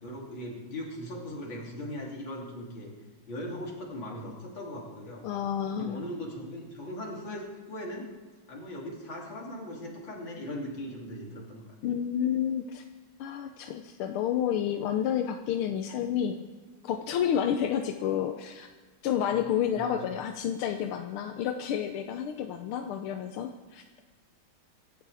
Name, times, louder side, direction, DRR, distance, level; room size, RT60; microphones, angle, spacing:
voice 1, 0.0-2.9 3.3-5.2 5.8-8.1 8.5-11.6 19.2-19.4 19.8-19.9, left 1 dB, 65° left, -2 dB, 3.7 m, -39 dB
voice 2, 5.2-6.0 11.8-12.8 13.2-16.4 16.8-18.7 19.0-23.8, left 9 dB, 90° left, 5 dB, 1.7 m, -30 dB
25.5 x 12.5 x 3.5 m, 1.4 s
omnidirectional pair, 2.3 m